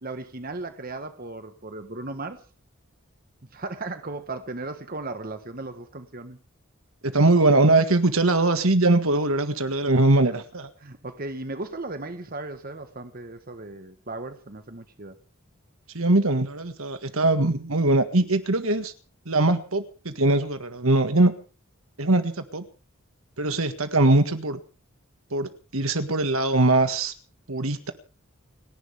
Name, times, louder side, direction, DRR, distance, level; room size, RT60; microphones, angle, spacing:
voice 1, 0.0-2.4 3.5-6.4 10.8-15.2, right 2 dB, 45° right, 1.3 m, -36 dB
voice 2, 7.0-10.7 15.9-18.9 19.3-21.3 22.0-22.6 23.4-24.6 25.3-27.1 27.5-27.9, right 2 dB, 80° right, 1.8 m, -21 dB
29.5 x 11.0 x 3.6 m
head